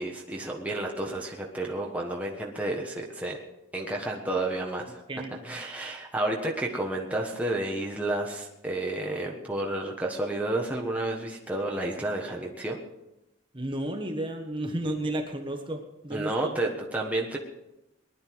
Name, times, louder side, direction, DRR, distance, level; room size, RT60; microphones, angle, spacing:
voice 1, 0.0-3.4 3.7-5.0 5.4-12.8 16.1-17.4, right 2 dB, 5° right, -1 dB, 1.3 m, -31 dB
voice 2, 5.1-5.6 13.5-16.6, right 1 dB, 25° right, 4 dB, 1.4 m, -33 dB
19.5 x 11.5 x 4.7 m, 0.91 s
head